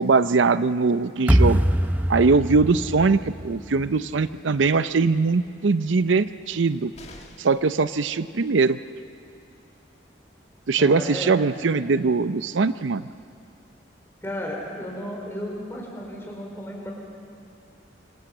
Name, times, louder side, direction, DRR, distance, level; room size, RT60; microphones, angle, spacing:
voice 1, 0.0-1.6 2.1-6.9 7.4-8.8 10.7-13.0, right 4 dB, 80° right, 13 dB, 0.6 m, -21 dB
sound 1, 1.3-4.4, equal, 10° right, 0.6 m, -23 dB
sound 2, 6.9-7.7 9.6-9.7 10.1-10.2, left 2 dB, 35° left, 1.9 m, -46 dB
voice 2, 10.8-11.4 14.2-16.9, equal, 10° left, -1 dB, 4.9 m, -34 dB
26.5 x 25.0 x 7.9 m, 2.5 s
head